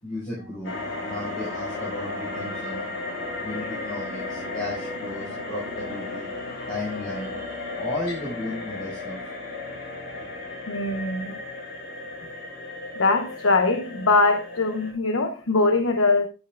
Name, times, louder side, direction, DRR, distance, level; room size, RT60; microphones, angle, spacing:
voice 1, 0.0-0.7 1.0-2.9 3.4-6.3 6.7-7.4 7.8-9.2, left 2 dB, 45° left, -5 dB, 4.8 m, -34 dB
sound 1, 0.6-14.9, left 2 dB, 65° left, 4.4 m, -35 dB
voice 2, 10.7-11.4 12.9-16.3, left 3 dB, 85° left, 5 dB, 1.0 m, -22 dB
12.0 x 8.4 x 2.4 m, 0.32 s
head